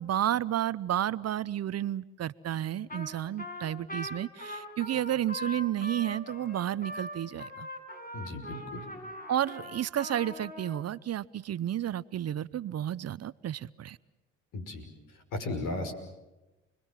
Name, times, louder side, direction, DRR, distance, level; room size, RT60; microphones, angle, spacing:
voice 1, 0.0-7.7 9.3-14.0, right 11 dB, 45° right, 0.8 m, -31 dB
Trumpet, 2.9-3.1 3.4-10.8, left 1 dB, 25° left, 7.1 m, -41 dB
voice 2, 8.1-8.8 14.5-14.9 15.1-15.9, left 2 dB, 65° left, 5.8 m, -36 dB
30.0 x 21.5 x 7.4 m
hypercardioid pair, 65°, 35 cm